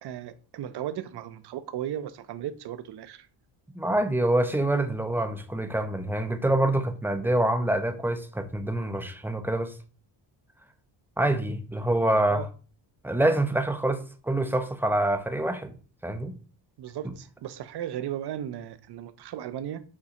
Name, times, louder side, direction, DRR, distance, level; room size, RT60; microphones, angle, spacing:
voice 1, 0.0-3.3 12.3-12.5 16.8-19.8, right 10 dB, 55° right, 0.6 m, -36 dB
voice 2, 3.8-9.7 11.2-12.5 13.0-15.8 16.0-16.3, right 1 dB, 5° right, 0.4 m, -26 dB
6.5 x 2.3 x 2.8 m
cardioid pair, 90°, 47 cm